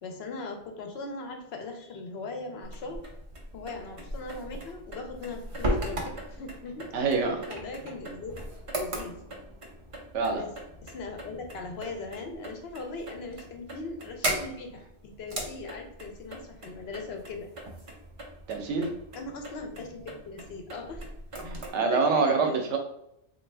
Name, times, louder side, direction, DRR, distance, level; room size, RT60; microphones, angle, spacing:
voice 1, 0.0-3.1 3.5-6.9 7.5-8.4 8.7-9.2 10.3-10.5 10.8-17.5 19.1-21.1 21.9-22.7, left 3 dB, 70° left, 3 dB, 0.8 m, -39 dB
sound 1, 2.6-21.7, right 1 dB, 40° right, 0.5 m, -38 dB
voice 2, 6.9-7.4 10.1-10.4 18.5-18.9 21.4-22.8, right 4 dB, 85° right, 4 dB, 0.9 m, -26 dB
3.3 x 2.4 x 3.3 m, 0.77 s
omnidirectional pair, 1.2 m